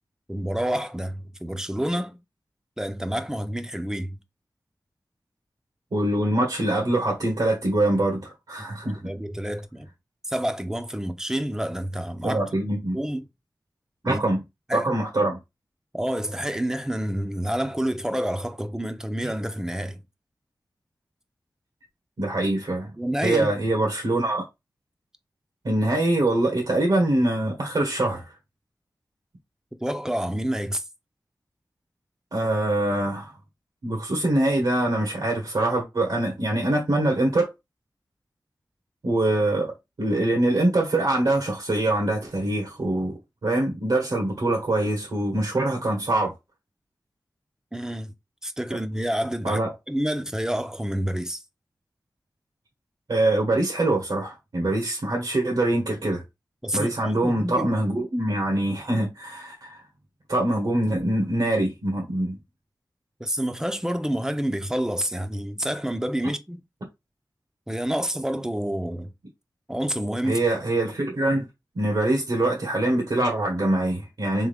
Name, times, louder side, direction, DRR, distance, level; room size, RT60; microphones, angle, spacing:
voice 1, 0.3-2.2 2.8-4.2 9.0-9.9 10.3-12.4 12.9-13.3 14.0-14.2 14.7-15.0 15.9-20.0 23.0-23.5 29.8-30.8 47.7-48.1 48.4-49.6 49.9-51.4 56.6-57.9 63.2-66.6 67.7-69.1 69.7-70.4, equal, 10° right, 0.6 m, -28 dB
voice 2, 5.9-9.0 12.2-13.0 14.0-14.4 14.7-15.4 22.2-22.9 23.2-24.4 25.6-28.3 32.3-33.3 33.8-37.5 39.0-46.3 49.4-49.7 53.1-56.2 56.7-59.8 60.3-62.4 70.2-71.5 71.7-74.5, right 1 dB, 75° right, 1.4 m, -24 dB
3.7 x 3.5 x 3.4 m
wide cardioid pair, 85°, 7 cm